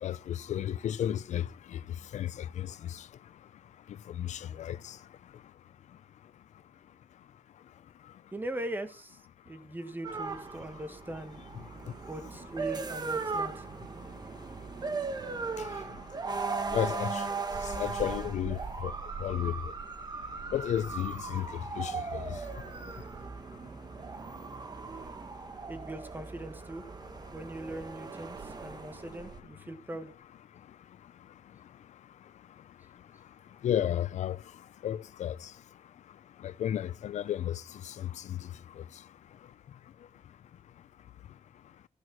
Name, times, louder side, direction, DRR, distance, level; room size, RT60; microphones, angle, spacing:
voice 1, 0.0-1.4 1.7-1.8 2.1-2.3 2.6-2.7 4.2-4.8 16.7-17.2 17.8-18.9 19.2-19.5 20.5-21.5 21.8-22.4 33.6-34.4 34.8-35.4 36.4-37.6 37.9-38.4, left 10 dB, 80° left, 0.5 m, -32 dB
voice 2, 8.3-9.2 9.4-11.4 12.0-13.6 16.0-16.1 25.7-26.9 27.3-30.1, right 1 dB, 15° right, 1.7 m, -40 dB
sound 1, 10.0-29.4, right 4 dB, 35° right, 1.4 m, -38 dB
15.5 x 6.4 x 6.0 m
wide cardioid pair, 125°, 12 cm